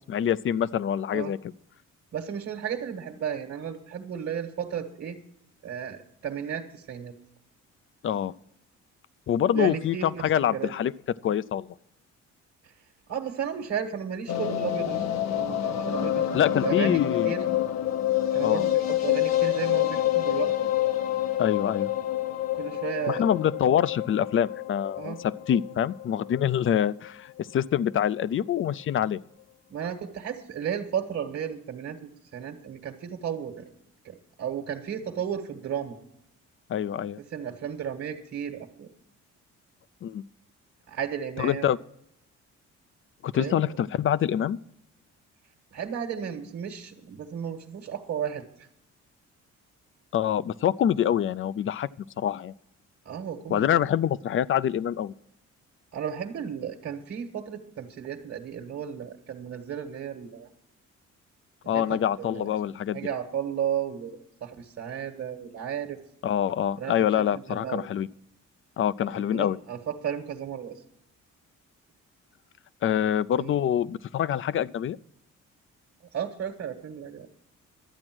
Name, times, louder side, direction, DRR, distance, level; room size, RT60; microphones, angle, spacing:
voice 1, 0.1-1.4 8.0-8.3 9.3-10.9 11.2-11.7 16.3-17.4 18.4-18.7 21.4-21.9 23.1-29.2 36.7-37.2 40.0-40.2 41.4-41.8 43.2-44.6 50.1-51.9 52.2-52.5 53.5-55.1 61.7-63.0 66.2-68.1 68.8-69.6 72.8-75.0, left 10 dB, 45° left, 19 dB, 0.4 m, -25 dB
voice 2, 2.1-5.2 5.6-7.1 9.5-10.7 13.1-17.4 18.3-20.7 22.5-23.2 25.0-25.2 29.7-32.0 32.3-33.6 34.0-36.0 37.3-38.9 40.9-41.7 43.4-43.8 45.7-48.4 53.0-53.8 55.9-60.5 61.7-62.5 62.9-66.0 66.8-67.8 69.1-70.8 73.4-73.5 76.1-77.3, right 8 dB, 55° right, 2 dB, 1.5 m, -34 dB
sound 1, 14.3-26.4 26.7-26.8 27.0-27.1 27.4-27.5, left 12 dB, 60° left, 0.9 m, -27 dB
12.5 x 8.7 x 6.1 m, 0.78 s
cardioid pair, 90°, 30 cm